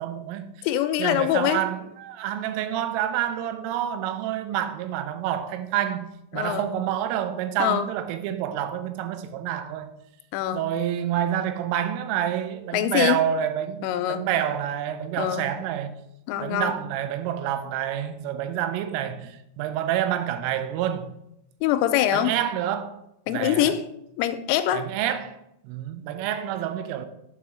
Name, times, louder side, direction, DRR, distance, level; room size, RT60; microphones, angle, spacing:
voice 1, 0.0-0.5 1.0-9.9 10.5-15.9 16.4-21.1 22.1-23.0 23.3-23.7 24.7-25.4 25.6-27.1, right 10 dB, 85° right, 3.2 m, -28 dB
voice 2, 0.6-1.6 6.3-6.7 7.6-7.9 10.3-10.6 12.7-13.2 13.8-14.2 15.2-15.5 16.3-16.8 21.6-22.3 23.3-23.8 24.2-24.9, left 11 dB, 90° left, 3.2 m, -24 dB
7.7 x 4.9 x 5.5 m
omnidirectional pair, 5.7 m